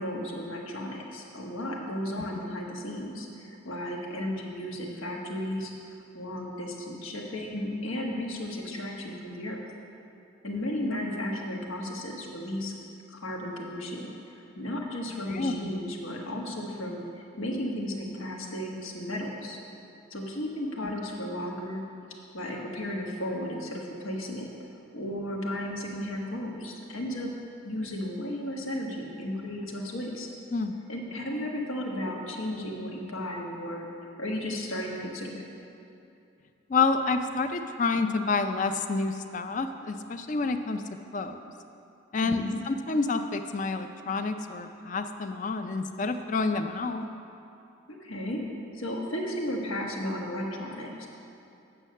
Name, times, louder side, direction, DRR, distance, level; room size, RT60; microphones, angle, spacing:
voice 1, 0.0-5.7 6.1-9.6 10.4-12.7 13.1-19.6 20.1-21.8 22.3-24.5 24.9-27.3 27.6-30.3 30.9-33.9 34.2-35.4 42.2-42.6 47.9-48.4 48.7-51.1, left 1 dB, 90° left, 0 dB, 1.3 m, -34 dB
voice 2, 15.3-15.6 30.5-30.8 36.7-40.8 41.1-41.4 42.1-47.0, left 4 dB, 40° left, 8 dB, 0.4 m, -28 dB
8.7 x 6.3 x 6.5 m, 2.7 s
head